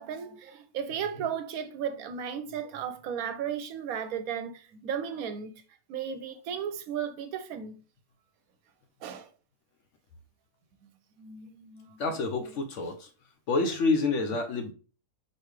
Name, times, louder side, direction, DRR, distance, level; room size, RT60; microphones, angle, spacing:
voice 1, 0.0-5.5 5.9-7.8 9.0-9.3 11.2-12.0, right 8 dB, 70° right, 1.0 m, -35 dB
voice 2, 12.0-13.1 13.5-14.7, left 3 dB, 60° left, 0.9 m, -28 dB
4.5 x 3.2 x 3.2 m
omnidirectional pair, 1.6 m